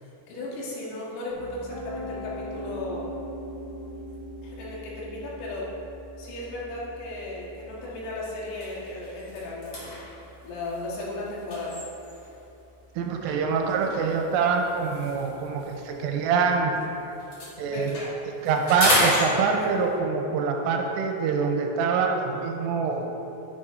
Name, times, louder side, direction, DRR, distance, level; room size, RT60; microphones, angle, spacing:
voice 1, 0.0-3.1 4.4-5.7 6.2-9.9 10.4-11.8 17.6-18.1, left 2 dB, 85° left, -5 dB, 4.2 m, -35 dB
Piano, 1.3-13.2, left 1 dB, 65° right, 1.9 m, -42 dB
sound 1, 7.3-7.5 8.0-8.1 8.5-12.4 13.3-16.8 17.1-20.0, left 1 dB, 55° left, 1.6 m, -32 dB
voice 2, 13.0-16.8 17.6-18.0 18.4-23.1, right 5 dB, 85° right, 2 dB, 3.2 m, -25 dB
9.8 x 9.6 x 2.6 m, 3.0 s
omnidirectional pair, 5.8 m